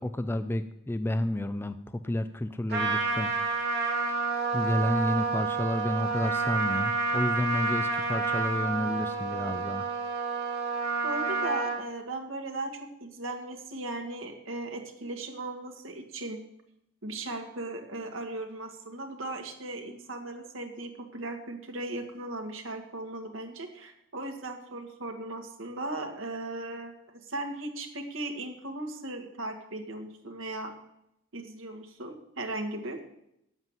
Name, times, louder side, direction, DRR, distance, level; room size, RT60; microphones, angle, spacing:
voice 1, 0.0-3.3 4.5-9.9, left 1 dB, 10° left, 9 dB, 0.4 m, -30 dB
Trumpet, 2.7-11.8, right 4 dB, 55° right, 3.0 m, -29 dB
voice 2, 11.0-16.4 17.0-26.9 27.2-30.7 31.3-33.0, right 2 dB, 90° right, 4 dB, 1.7 m, -37 dB
9.4 x 8.0 x 7.2 m, 0.82 s
head